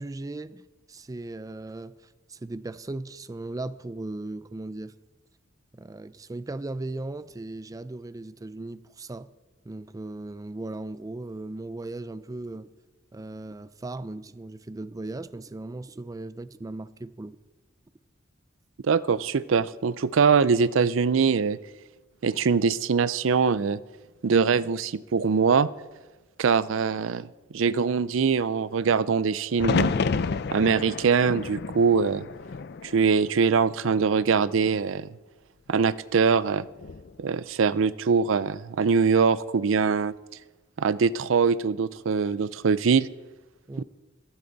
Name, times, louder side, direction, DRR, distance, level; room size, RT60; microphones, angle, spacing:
voice 1, 0.0-5.0 5.7-9.3 9.6-12.7 13.1-17.4 43.7-43.8, right 2 dB, 20° right, 0.4 m, -37 dB
voice 2, 18.8-21.6 22.2-23.8 24.2-25.7 26.4-27.3 27.5-29.9 30.5-32.2 32.8-35.1 35.7-36.6 37.2-40.1 40.8-43.1 43.8-43.9, right 5 dB, 90° right, 0.5 m, -23 dB
sound 1, 29.6-33.6 34.0-34.8 36.6-37.1, left 4 dB, 55° left, 0.5 m, -30 dB
15.5 x 13.0 x 4.0 m
head